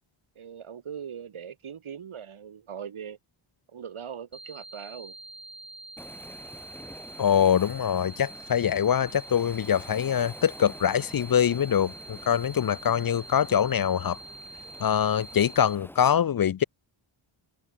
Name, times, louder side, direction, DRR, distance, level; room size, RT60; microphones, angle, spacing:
voice 1, 0.4-3.2 3.7-5.2, right 8 dB, 75° right, 3.8 m, -40 dB
sound 1, 4.3-15.8, right 2 dB, 10° right, 1.1 m, -45 dB
Waves surf, 6.0-16.1, left 1 dB, 5° left, 1.7 m, -48 dB
voice 2, 7.2-14.2 14.8-16.6, left 8 dB, 45° left, 0.5 m, -24 dB
wide cardioid pair, 130°, 49 cm